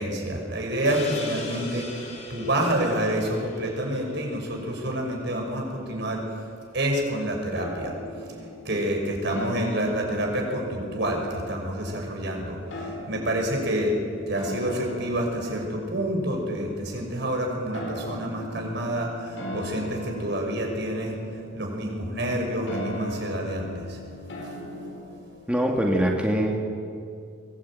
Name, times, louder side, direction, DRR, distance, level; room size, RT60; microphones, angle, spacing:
voice 1, 0.0-6.2 6.7-7.9 8.6-13.9 14.3-21.1 21.6-24.0, right 1 dB, 65° right, 1 dB, 6.1 m, -28 dB
sound 1, 0.8-5.4, left 1 dB, 40° left, 3.9 m, -38 dB
sound 2, 7.5-26.0, left 1 dB, 85° left, 5.0 m, -40 dB
voice 2, 25.5-26.7, right 1 dB, 5° right, 0 dB, 2.0 m, -23 dB
23.0 x 18.5 x 9.0 m, 2.3 s
head